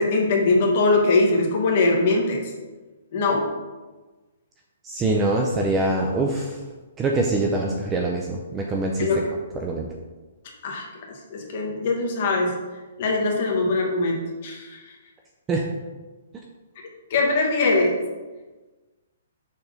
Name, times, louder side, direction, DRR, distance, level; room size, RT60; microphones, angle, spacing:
voice 1, 0.0-2.5 3.1-3.4 9.0-9.2 10.6-12.5 13.0-14.8 17.1-18.0, left 3 dB, 30° left, 0 dB, 1.4 m, -22 dB
voice 2, 4.8-6.6 7.0-9.1 9.5-9.9 15.5-15.7, right 2 dB, 10° right, 0 dB, 0.4 m, -24 dB
6.6 x 4.4 x 5.6 m, 1.2 s
hypercardioid pair, 180°, 0 cm